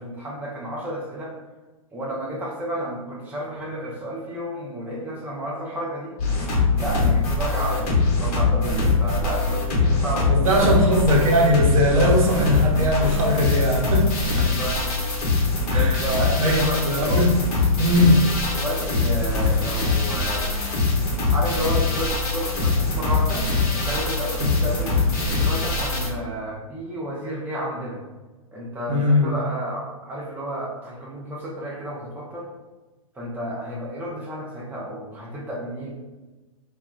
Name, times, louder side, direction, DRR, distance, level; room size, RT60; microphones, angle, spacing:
voice 1, 0.0-1.3 1.9-6.1 6.7-10.8 14.2-14.9 15.7-17.1 17.8-18.2 18.5-20.4 21.3-23.5 23.7-28.0 28.5-32.5 33.1-35.9, equal, 10° right, -4 dB, 0.5 m, -31 dB
sound 1, 6.2-26.1, left 3 dB, 35° left, 0.9 m, -22 dB
voice 2, 10.3-14.1 14.4-14.5 15.7-16.0 16.4-17.4 17.8-18.2 28.9-29.3, equal, 70° right, -1 dB, 0.8 m, -20 dB
2.2 x 2.1 x 3.6 m, 1.2 s
hypercardioid pair, 115°, 19 cm